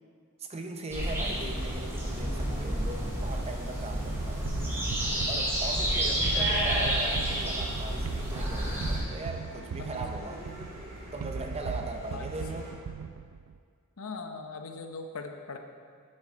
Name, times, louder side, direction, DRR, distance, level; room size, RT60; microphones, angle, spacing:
voice 1, 0.4-4.4 5.3-10.5 11.1-12.8, right 2 dB, 30° right, 4 dB, 0.7 m, -39 dB
sound 1, 0.9-9.0, right 1 dB, 10° right, 2.7 m, -30 dB
sound 2, 3.8-12.7, equal, 45° right, 2.2 m, -48 dB
sound 3, 4.0-13.6, right 5 dB, 75° right, 0.4 m, -38 dB
voice 2, 5.8-6.4 9.8-10.1 12.1-12.2 14.0-15.6, left 4 dB, 70° left, 5 dB, 0.8 m, -41 dB
8.9 x 7.8 x 4.4 m, 2.1 s
head